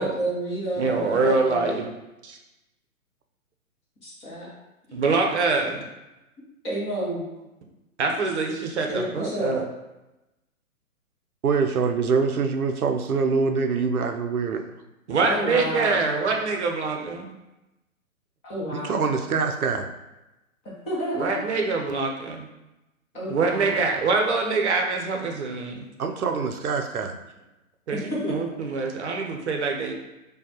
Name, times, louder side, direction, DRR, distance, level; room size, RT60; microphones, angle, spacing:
voice 1, 0.0-1.7 4.0-4.5 6.6-7.3 8.9-9.5 15.2-16.1 18.4-19.1 20.9-21.4 23.1-23.8 27.9-28.4, equal, 15° left, -6 dB, 0.7 m, -30 dB
voice 2, 0.8-1.8 2.2-2.4 4.9-5.8 8.0-9.6 15.1-17.3 21.2-22.5 23.3-25.9 27.9-29.9, right 4 dB, 50° right, 2 dB, 0.7 m, -25 dB
voice 3, 11.4-14.6 18.7-19.9 26.0-27.2, right 5 dB, 90° right, 6 dB, 0.5 m, -24 dB
5.1 x 2.2 x 2.9 m, 0.98 s
figure-of-eight pair, 130°, 43 cm